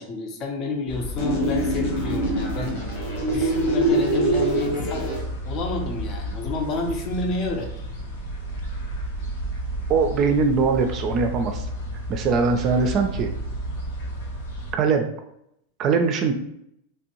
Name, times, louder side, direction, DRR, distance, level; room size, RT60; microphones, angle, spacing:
voice 1, 0.0-2.8 3.3-5.1 5.4-7.7, left 3 dB, 40° left, 3 dB, 0.7 m, -29 dB
sound 1, 0.9-14.7, equal, 75° left, 1.0 m, -32 dB
sound 2, 1.2-5.2, right 1 dB, 60° left, 1.3 m, -24 dB
voice 2, 9.9-11.7 12.1-13.3 14.7-15.1 15.8-16.3, right 5 dB, 40° right, 5 dB, 0.4 m, -21 dB
3.2 x 2.5 x 2.8 m, 0.75 s
hypercardioid pair, 100°, 0 cm